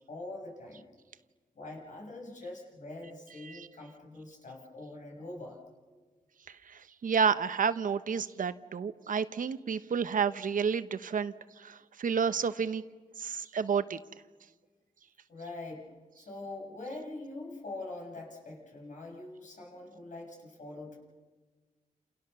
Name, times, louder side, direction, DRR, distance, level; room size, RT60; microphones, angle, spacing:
voice 1, 0.1-0.8 1.6-5.6 15.3-15.9 16.2-21.0, left 2 dB, 65° left, 0 dB, 7.4 m, -43 dB
voice 2, 3.4-3.7 6.5-12.8 13.2-14.0, right 6 dB, 75° right, 12 dB, 1.0 m, -31 dB
29.5 x 28.5 x 6.9 m, 1.4 s
wide cardioid pair, 135°, 14 cm